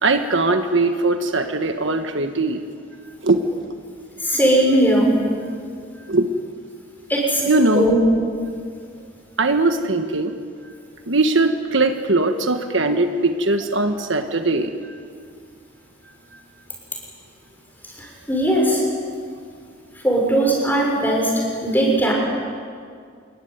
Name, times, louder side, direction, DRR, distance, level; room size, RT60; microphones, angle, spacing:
voice 1, 0.0-2.6 3.2-3.4 6.1-6.3 7.5-7.9 9.4-10.4 10.6-10.7 11.1-15.0 16.3-16.4, right 2 dB, 65° right, 6 dB, 1.5 m, -20 dB
voice 2, 4.2-5.2 7.1-7.4 7.7-8.0 17.8-18.8 20.0-22.1, right 1 dB, 10° left, -1 dB, 6.7 m, -19 dB
28.0 x 22.0 x 9.5 m, 2.2 s
head